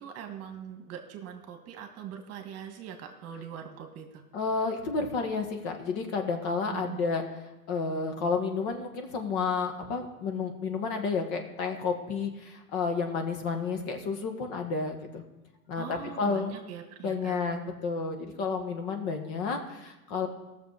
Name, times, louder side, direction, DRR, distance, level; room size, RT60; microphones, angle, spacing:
voice 1, 0.0-4.2 6.7-7.1 15.8-17.4, right 8 dB, 35° right, 5 dB, 1.5 m, -42 dB
voice 2, 4.3-7.2 7.7-15.2 15.7-16.5 17.0-20.3, left 4 dB, 45° left, 5 dB, 1.8 m, -31 dB
16.5 x 6.9 x 4.9 m, 1.0 s
hypercardioid pair, 120°, 44 cm